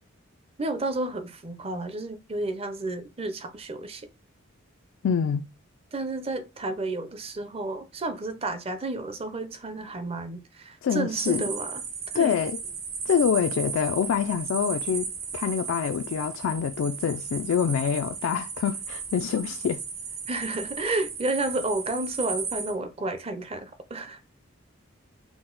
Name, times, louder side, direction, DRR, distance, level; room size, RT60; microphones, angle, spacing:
voice 1, 0.6-4.1 5.9-11.8 12.1-12.4 20.3-24.2, right 2 dB, 30° right, 0.5 m, -31 dB
voice 2, 5.0-5.5 10.8-11.4 12.1-12.6 13.1-15.1 15.3-19.8, left 7 dB, 85° left, 0.3 m, -26 dB
sound 1, 11.2-22.7, right 6 dB, 75° right, 1.1 m, -35 dB
5.9 x 2.1 x 3.9 m
head